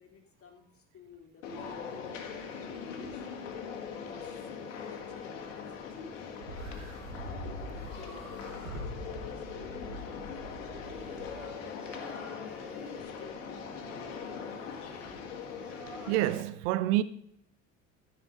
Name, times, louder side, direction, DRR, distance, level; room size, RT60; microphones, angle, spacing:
voice 1, 0.0-3.3 4.0-4.4 4.9-6.7 7.4-12.5 12.8-14.8, left 5 dB, 35° left, 2.9 m, -55 dB
sound 1, 1.4-16.4, left 6 dB, 70° left, 1.7 m, -41 dB
sound 2, 6.4-11.5, equal, 85° right, 2.4 m, -43 dB
Singing, 10.9-16.3, right 1 dB, 5° right, 1.9 m, -51 dB
voice 2, 16.1-17.0, right 15 dB, 60° right, 0.6 m, -27 dB
13.5 x 5.7 x 5.1 m
figure-of-eight pair, 60°, 38 cm